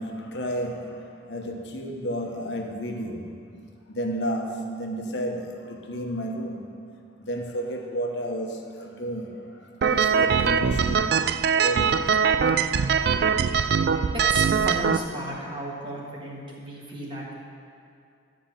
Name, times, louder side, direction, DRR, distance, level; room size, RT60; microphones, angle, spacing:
voice 1, 0.0-3.5 3.9-6.8 7.2-11.3 11.5-12.2, equal, 80° left, 1 dB, 1.1 m, -32 dB
sound 1, 9.8-15.0, right 6 dB, 60° right, 0.3 m, -22 dB
voice 2, 14.1-17.4, right 1 dB, 25° right, -3 dB, 1.7 m, -34 dB
11.5 x 5.1 x 7.4 m, 2.4 s
head